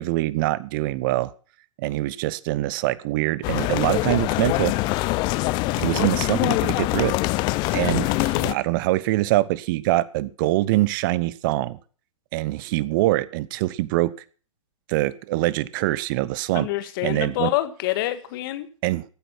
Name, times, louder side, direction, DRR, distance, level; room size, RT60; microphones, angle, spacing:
voice 1, 0.0-1.3 1.8-4.7 5.8-7.2 7.7-11.8 12.3-14.1 14.9-16.7 17.0-17.5 18.8-19.0, right 17 dB, 40° right, 20 dB, 0.9 m, -24 dB
sound 1, 3.4-8.5, left 21 dB, 25° left, 0.5 m, -24 dB
voice 2, 8.0-8.4 16.5-18.7, left 15 dB, 45° left, 12 dB, 1.6 m, -27 dB
15.5 x 9.3 x 6.0 m, 0.40 s
figure-of-eight pair, 120°, 17 cm